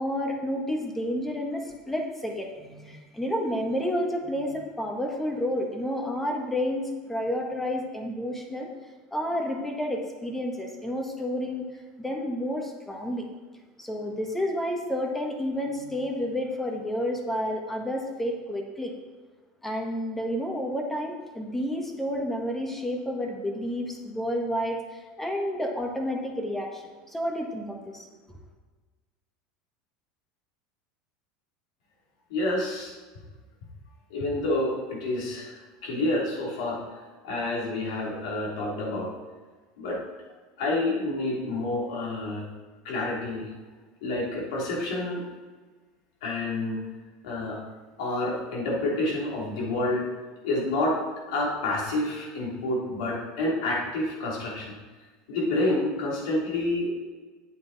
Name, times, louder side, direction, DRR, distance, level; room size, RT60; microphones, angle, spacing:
voice 1, 0.0-8.7 9.1-11.7 12.0-13.3 13.8-18.9 19.6-28.4, equal, 5° left, 2 dB, 1.5 m, -30 dB
voice 2, 32.3-32.9 34.1-36.8 37.2-39.1 39.8-40.0 40.6-42.4 42.8-43.5 44.0-45.3 46.2-46.8 47.2-47.6 48.0-50.1 50.4-51.0 51.3-54.7 55.3-56.9, left 2 dB, 80° left, -4 dB, 3.2 m, -28 dB
8.8 x 8.0 x 4.1 m, 1.4 s
supercardioid pair, 120°, 3 cm